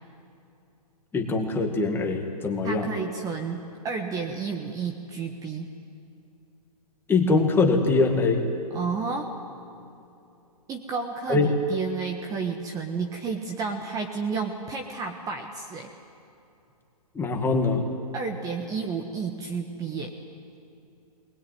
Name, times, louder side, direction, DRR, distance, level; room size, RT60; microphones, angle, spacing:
voice 1, 1.1-2.9 7.1-8.4 11.3-11.5 17.2-17.8, left 3 dB, 10° left, 2 dB, 2.1 m, -23 dB
voice 2, 2.6-5.7 8.7-9.3 10.7-15.9 18.1-20.1, right 5 dB, 15° right, 3 dB, 1.4 m, -31 dB
22.0 x 20.5 x 9.4 m, 2.7 s
hypercardioid pair, 140°, 20 cm